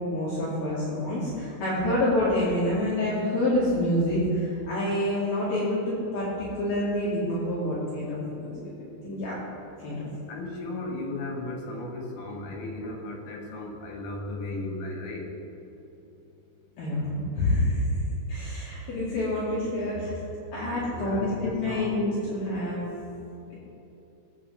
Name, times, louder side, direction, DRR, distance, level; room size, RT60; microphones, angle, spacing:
voice 1, 0.0-8.7 9.0-9.4 9.8-10.1 16.8-17.9 18.3-20.1 20.5-22.8, left 1 dB, 55° left, -9 dB, 3.5 m, -27 dB
voice 2, 1.5-2.0 10.3-15.3 20.7-22.0, left 2 dB, 80° left, 0 dB, 4.4 m, -36 dB
20.0 x 8.4 x 3.6 m, 3.0 s
omnidirectional pair, 5.8 m